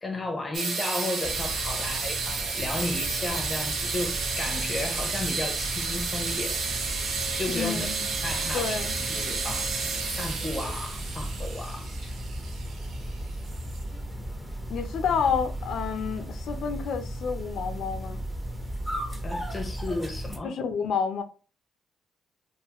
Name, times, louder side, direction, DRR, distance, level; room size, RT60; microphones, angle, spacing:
voice 1, 0.0-6.6 7.3-7.9 8.2-8.8 9.1-12.1 19.2-20.5, left 2 dB, 25° left, 0.6 m, -34 dB
sound 1, 0.5-14.0, right 4 dB, 70° right, 0.6 m, -31 dB
sound 2, 1.2-20.4, equal, 15° right, 0.7 m, -36 dB
voice 2, 7.5-8.1 8.5-8.9 14.7-18.2 20.4-21.2, left 6 dB, 70° left, 0.5 m, -29 dB
2.5 x 2.4 x 2.8 m
cardioid pair, 90°, 0 cm